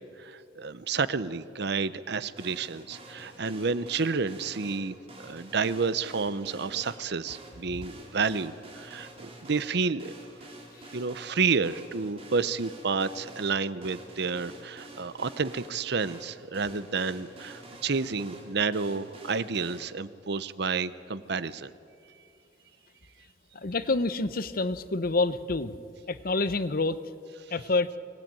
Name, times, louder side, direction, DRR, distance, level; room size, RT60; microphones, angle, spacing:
voice 1, 0.2-10.4 10.9-21.7, right 4 dB, 65° right, 15 dB, 0.8 m, -30 dB
sound 1, 2.4-19.8, right 1 dB, 35° right, 3.8 m, -48 dB
voice 2, 23.5-25.7 26.1-27.0 27.5-27.9, left 3 dB, 55° left, 13 dB, 0.9 m, -27 dB
24.5 x 18.0 x 9.0 m, 2.5 s
head